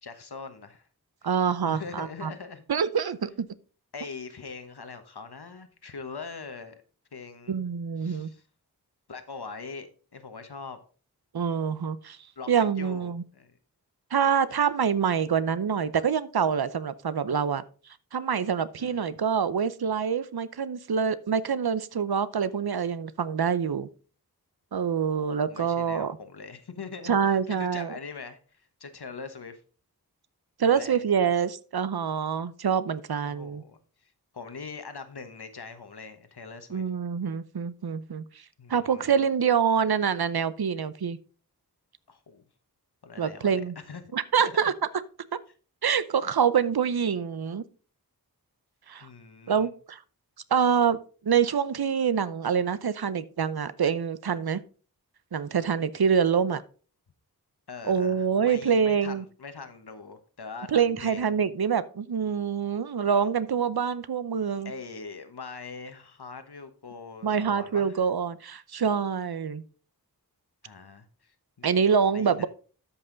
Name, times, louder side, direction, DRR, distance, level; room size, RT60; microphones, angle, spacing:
voice 1, 0.0-0.9 1.2-1.3 1.6-2.6 3.9-6.7 7.1-7.5 8.0-8.4 9.1-10.8 12.4-12.5 12.8-13.6 18.8-19.1 22.5-22.6 25.1-29.6 30.6-31.3 33.2-36.8 38.6-39.2 42.1-42.4 43.0-44.0 44.4-44.7 49.0-49.7 57.7-61.3 64.6-68.0 70.6-71.7 72.0-72.5, left 4 dB, 85° left, 1.2 m, -42 dB
voice 2, 1.2-2.3 2.7-3.5 7.5-8.3 11.3-12.2 12.5-13.2 14.1-17.6 18.1-23.9 24.7-26.2 27.0-27.9 30.6-33.6 36.7-38.2 38.7-41.2 43.2-43.7 44.1-44.7 45.8-47.6 48.9-49.1 49.5-50.0 50.5-51.0 51.2-54.6 55.3-56.6 57.9-59.2 60.7-64.7 67.2-69.6 71.6-72.5, right 7 dB, 75° right, 0.7 m, -26 dB
13.0 x 5.6 x 3.9 m
wide cardioid pair, 45°, 38 cm